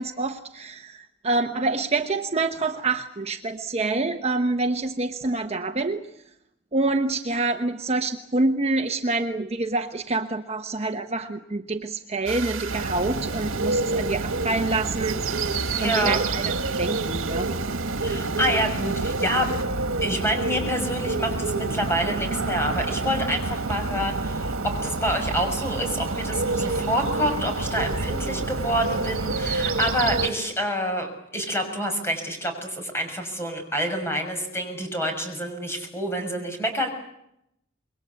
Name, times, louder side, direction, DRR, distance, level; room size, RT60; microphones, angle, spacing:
voice 1, 0.0-6.0 6.7-15.2 15.8-16.4 16.8-17.5, right 3 dB, 30° right, 6 dB, 1.0 m, -26 dB
sound 1, 12.3-19.6, right 5 dB, 70° right, 2.0 m, -37 dB
Bird, 12.7-30.3, right 3 dB, 85° right, 1.6 m, -28 dB
voice 2, 15.7-16.2 18.0-36.9, equal, 10° left, 4 dB, 6.5 m, -27 dB
27.0 x 22.5 x 8.3 m, 0.81 s
head